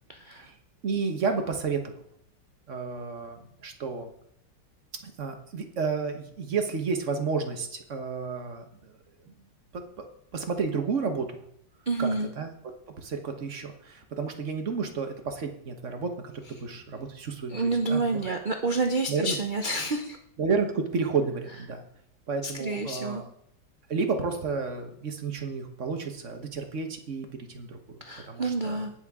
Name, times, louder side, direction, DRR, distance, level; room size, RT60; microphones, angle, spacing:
voice 1, 0.1-0.4 11.9-12.3 17.5-20.2 22.4-23.2 28.0-28.9, right 3 dB, 70° right, 5 dB, 0.4 m, -29 dB
voice 2, 0.8-1.9 2.7-4.1 5.0-8.9 9.3-9.4 9.7-10.1 10.3-11.4 12.0-12.5 13.0-18.4 19.1-19.4 20.4-21.8 22.3-23.3 23.9-28.0 28.2-28.9, right 5 dB, 45° right, 5 dB, 1.5 m, -31 dB
19.0 x 6.6 x 3.6 m, 0.71 s
omnidirectional pair, 2.0 m